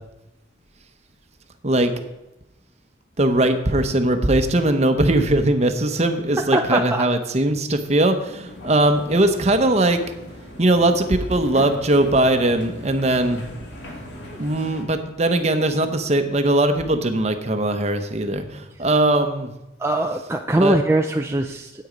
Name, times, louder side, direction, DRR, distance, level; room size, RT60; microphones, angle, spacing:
voice 1, 3.2-10.0 10.6-13.4 14.3-19.5 20.6-20.8, right 1 dB, 35° right, 7 dB, 0.9 m, -20 dB
voice 2, 6.4-7.0 19.8-21.9, right 1 dB, 15° right, 3 dB, 0.4 m, -21 dB
sound 1, 8.5-14.8, left 1 dB, 70° left, 2.2 m, -39 dB
9.6 x 8.5 x 5.1 m, 0.93 s
head